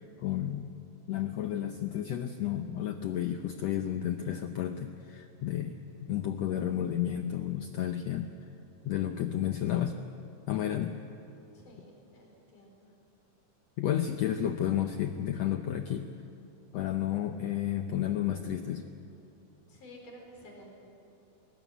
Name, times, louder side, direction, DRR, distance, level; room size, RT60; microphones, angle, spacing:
voice 1, 0.2-0.8 1.1-8.3 8.8-10.0 10.5-11.0 13.8-16.1 16.7-18.8, left 11 dB, 85° left, 7 dB, 1.5 m, -32 dB
voice 2, 11.5-12.9 19.7-20.7, equal, 65° left, 0 dB, 6.0 m, -52 dB
21.0 x 19.0 x 9.3 m, 2.7 s
omnidirectional pair, 4.0 m